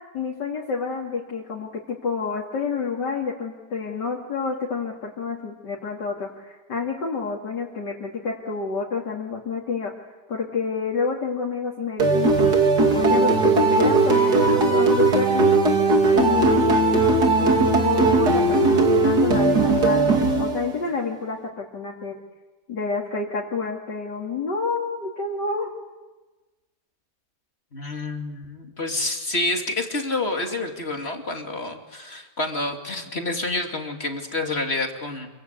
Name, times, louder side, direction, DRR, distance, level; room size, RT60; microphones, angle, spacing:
voice 1, 0.1-9.9 10.3-12.5 12.9-15.6 16.1-22.1 22.7-25.7, left 4 dB, 80° left, -3 dB, 3.4 m, -29 dB
sound 1, 12.0-20.9, right 3 dB, 65° right, 3.2 m, -18 dB
voice 2, 27.7-35.3, left 2 dB, 35° left, 3 dB, 2.9 m, -28 dB
27.0 x 24.0 x 8.2 m, 1.2 s
omnidirectional pair, 1.8 m